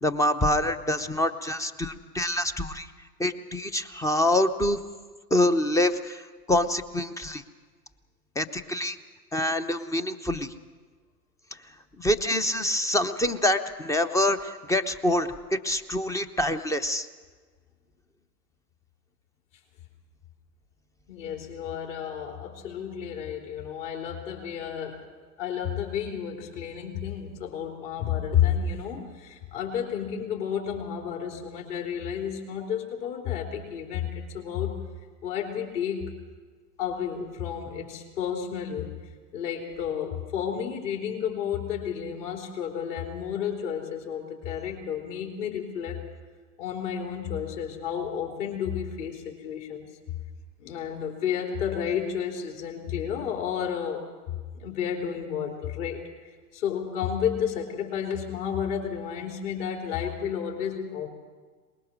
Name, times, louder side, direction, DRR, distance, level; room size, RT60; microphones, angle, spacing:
voice 1, 0.0-2.9 3.2-4.8 5.3-7.4 8.4-9.0 9.3-10.5 12.0-17.1, left 1 dB, 5° left, 11 dB, 0.7 m, -26 dB
voice 2, 21.1-25.0 25.4-34.7 35.2-36.2 36.8-38.9 39.3-46.1 46.6-49.9 50.6-54.0 54.6-56.1 56.5-61.1, left 8 dB, 50° left, 1 dB, 3.7 m, -31 dB
23.5 x 20.5 x 6.2 m, 1.5 s
hypercardioid pair, 105°, 48 cm